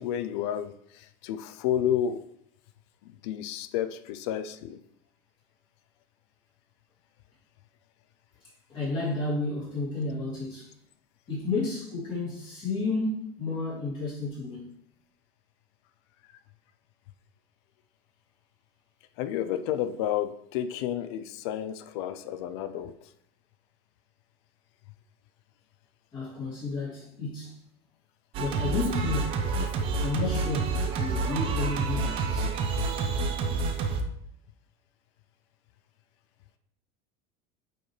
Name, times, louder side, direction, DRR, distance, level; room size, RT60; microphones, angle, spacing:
voice 1, 0.0-2.2 3.1-4.8 19.2-22.9, left 10 dB, 70° left, 0.5 m, -31 dB
voice 2, 8.7-10.7 11.3-14.7 26.1-27.5 28.4-29.4 30.0-32.5, left 3 dB, 30° left, 3.1 m, -31 dB
Singing, 28.3-34.0, right 4 dB, 40° right, 0.9 m, -28 dB
8.8 x 5.2 x 3.2 m
cardioid pair, 160°, 14 cm